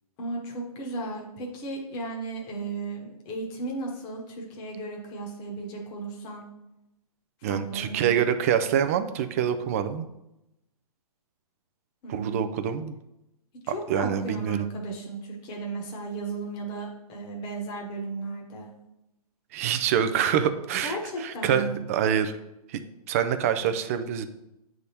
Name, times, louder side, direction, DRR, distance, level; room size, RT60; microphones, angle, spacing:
voice 1, 0.2-6.5 7.4-8.2 12.0-12.4 13.6-18.7 20.8-21.8, right 3 dB, 25° left, -1 dB, 1.1 m, -35 dB
voice 2, 7.4-10.1 12.1-12.9 13.9-14.7 19.5-22.4 22.7-22.8 23.1-24.2, right 8 dB, 25° right, 10 dB, 0.3 m, -26 dB
8.2 x 3.5 x 4.2 m, 0.89 s
hypercardioid pair, 145°, 20 cm